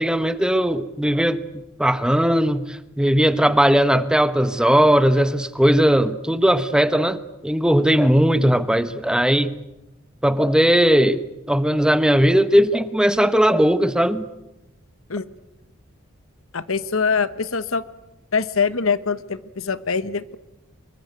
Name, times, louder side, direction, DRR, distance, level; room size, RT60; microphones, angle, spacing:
voice 1, 0.0-7.2 7.4-9.5 10.2-14.3, equal, 5° right, 12 dB, 1.0 m, -18 dB
voice 2, 16.5-17.8 18.3-20.3, left 5 dB, 80° left, 14 dB, 1.2 m, -23 dB
25.0 x 22.5 x 9.3 m, 0.97 s
head